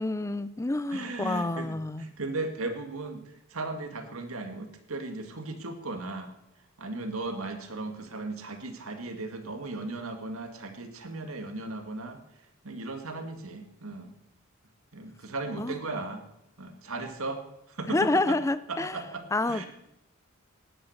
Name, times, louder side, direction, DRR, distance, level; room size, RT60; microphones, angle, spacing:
voice 1, 0.0-2.1 15.6-15.8 17.9-19.0 19.3-19.6, left 2 dB, 15° left, 0.5 m, -28 dB
voice 2, 0.9-3.2 3.5-6.3 6.8-12.2 12.6-14.1 14.9-16.2 16.6-18.4 18.7-19.7, right 2 dB, 80° right, 2.1 m, -36 dB
17.0 x 11.0 x 6.6 m
head